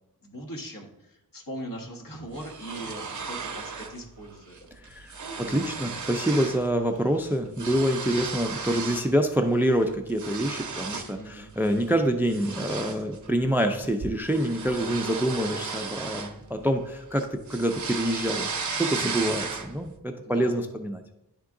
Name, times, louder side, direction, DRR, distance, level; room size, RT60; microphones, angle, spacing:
voice 1, 0.2-4.6 5.0-6.0 11.2-11.5 20.2-20.6, right 1 dB, 55° left, 0 dB, 1.4 m, -41 dB
sound 1, 2.3-4.0 4.3-4.6 4.8-6.7 7.0-9.1 9.6-11.2 11.6-11.9 12.3-16.8 17.2-19.9, right 5 dB, 45° right, 0.7 m, -35 dB
voice 2, 4.8-21.0, right 1 dB, 5° right, 6 dB, 0.4 m, -26 dB
10.5 x 3.6 x 3.7 m, 0.84 s
wide cardioid pair, 90°, 40 cm